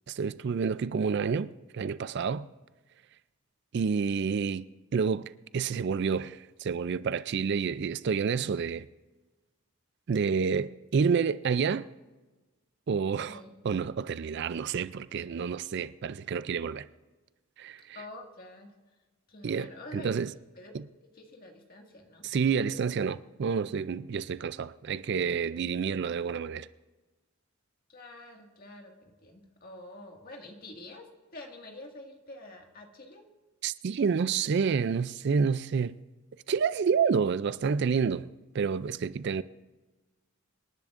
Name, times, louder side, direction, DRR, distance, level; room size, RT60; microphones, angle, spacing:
voice 1, 0.1-2.5 3.7-4.7 4.9-8.9 10.1-11.9 12.9-13.4 13.6-16.9 17.6-18.0 19.4-20.3 20.7-20.8 22.2-26.7 33.6-36.0 36.5-38.3 38.5-39.4, right 6 dB, 50° right, 0.3 m, -29 dB
voice 2, 13.2-13.6 17.9-18.7 19.3-20.2 20.6-20.7 21.0-22.2 27.9-33.2, left 2 dB, 40° left, 1.9 m, -47 dB
26.5 x 11.0 x 2.5 m
head